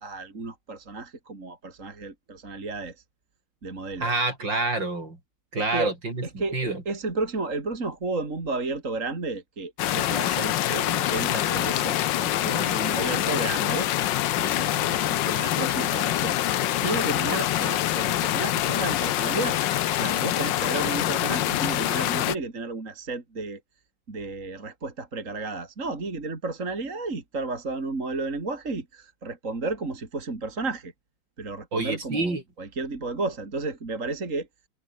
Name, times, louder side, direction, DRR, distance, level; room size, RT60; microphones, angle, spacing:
voice 1, 0.0-3.0 3.6-4.1 5.6-5.9 6.2-13.9 14.4-16.4 16.8-19.6 19.9-23.6 24.1-30.9 31.4-34.5, right 3 dB, 35° right, 3.5 m, -32 dB
voice 2, 4.0-5.2 5.5-6.8 31.7-32.4, right 3 dB, 55° right, 6.4 m, -27 dB
sound 1, 9.8-22.4, left 13 dB, 65° left, 1.4 m, -25 dB
omnidirectional pair, 2.3 m